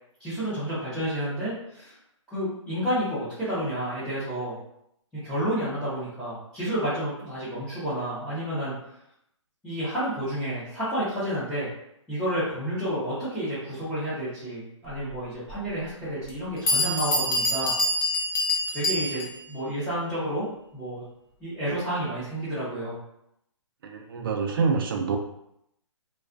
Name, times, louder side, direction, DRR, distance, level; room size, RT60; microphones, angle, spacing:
voice 1, 0.2-1.9 2.3-4.6 5.2-8.8 9.6-11.7 12.1-17.7 18.7-20.5 20.7-21.0 21.4-23.0, equal, ahead, -15 dB, 0.6 m, -30 dB
Bell, 15.5-15.6 16.3-16.4 16.7-19.5, left 1 dB, 45° left, 0.7 m, -26 dB
voice 2, 23.8-25.2, right 5 dB, 45° right, 4 dB, 0.4 m, -26 dB
2.3 x 2.3 x 2.4 m, 0.78 s
hypercardioid pair, 155°, 16 cm